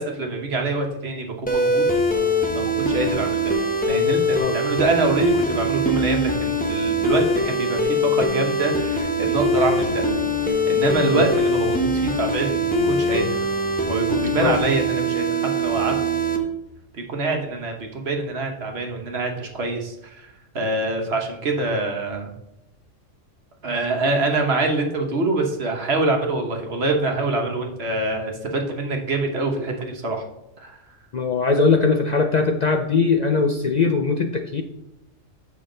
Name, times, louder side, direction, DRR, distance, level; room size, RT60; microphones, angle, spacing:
voice 1, 0.0-1.9 2.5-3.6 3.9-10.1 10.7-13.2 13.9-15.9 16.9-20.3 20.5-22.3 23.6-30.2 30.6-30.8, right 2 dB, 55° right, 3 dB, 1.3 m, -25 dB
sound 1, 1.5-16.4, equal, 10° left, 0.7 m, -22 dB
voice 2, 31.1-34.6, left 4 dB, 75° left, 4 dB, 0.4 m, -20 dB
7.1 x 6.0 x 3.8 m, 0.89 s
omnidirectional pair, 1.4 m